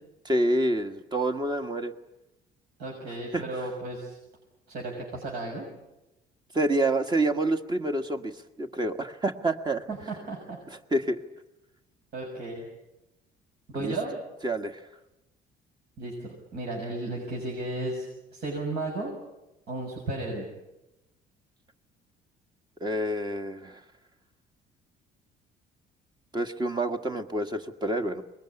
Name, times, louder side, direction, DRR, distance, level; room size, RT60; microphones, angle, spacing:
voice 1, 0.2-1.9 3.3-3.4 6.5-8.3 8.6-9.8 10.9-11.2 13.8-13.9 14.4-14.8 22.8-23.8 26.3-28.2, right 1 dB, 25° right, 8 dB, 1.5 m, -27 dB
voice 2, 2.8-4.2 4.7-5.7 9.9-10.6 12.1-12.7 13.7-14.2 16.0-19.2 19.7-20.5, right 2 dB, 70° right, -1 dB, 6.6 m, -34 dB
24.0 x 21.0 x 9.9 m, 0.96 s
cardioid pair, 110°, 17 cm